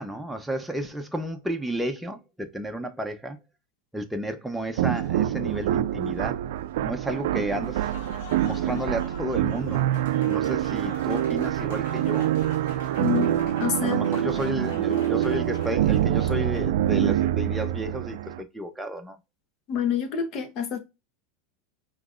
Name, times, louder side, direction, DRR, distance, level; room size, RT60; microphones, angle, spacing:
voice 1, 0.0-3.4 3.9-6.4 6.8-7.9 8.4-9.8 10.3-12.3 13.8-19.2, equal, 5° right, 0.8 m, -32 dB
sound 1, 4.8-18.4, right 12 dB, 75° right, 0.4 m, -25 dB
Applause, 7.5-16.9, left 4 dB, 75° left, 1.6 m, -46 dB
voice 2, 13.0-13.3 13.6-14.0 19.7-20.8, left 8 dB, 50° left, 1.3 m, -27 dB
5.6 x 3.1 x 2.5 m
hypercardioid pair, 110°, 0 cm